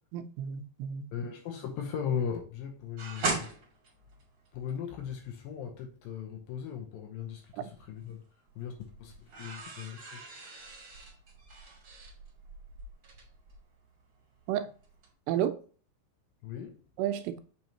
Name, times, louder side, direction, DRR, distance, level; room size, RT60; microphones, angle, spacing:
voice 1, 0.1-1.1 7.6-7.7 14.5-14.7 15.3-15.6 17.0-17.4, right 10 dB, 90° right, 2.9 m, -31 dB
voice 2, 1.1-3.4 4.5-8.2 8.6-8.7 9.0-9.1 9.4-10.2 16.4-16.8, left 8 dB, 75° left, 2.3 m, -37 dB
sound 1, 3.0-5.1 7.3-8.1 8.5-14.5 14.8-15.1, right 3 dB, 35° right, 2.4 m, -39 dB
7.5 x 5.3 x 2.9 m
omnidirectional pair, 4.8 m